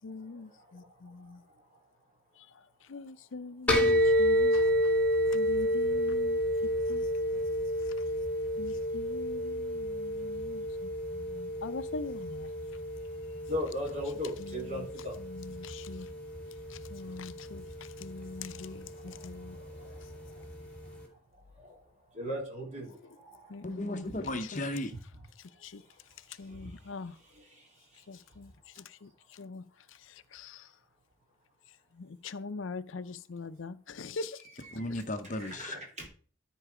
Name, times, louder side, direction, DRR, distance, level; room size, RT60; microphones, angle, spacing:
voice 1, 0.0-1.4 2.4-5.0 5.3-7.5 7.8-7.9 8.6-12.5 14.4-14.9 15.2-16.1 16.7-19.6 23.0-23.2 23.5-24.2 24.5-24.6 25.4-25.8 26.3-27.2 28.1-30.7 31.9-34.4, left 4 dB, 80° left, 0.6 m, -43 dB
sound 1, 3.7-21.0, equal, 5° left, 2.1 m, -31 dB
voice 2, 13.5-15.1 19.0-20.0 20.3-20.4 21.6-21.8 22.1-23.6 26.5-26.7 27.5-27.7 35.5-36.1, left 1 dB, 35° right, 3.4 m, -38 dB
voice 3, 23.6-24.9 34.7-35.8, left 1 dB, 40° left, 0.8 m, -35 dB
13.5 x 4.6 x 4.8 m
head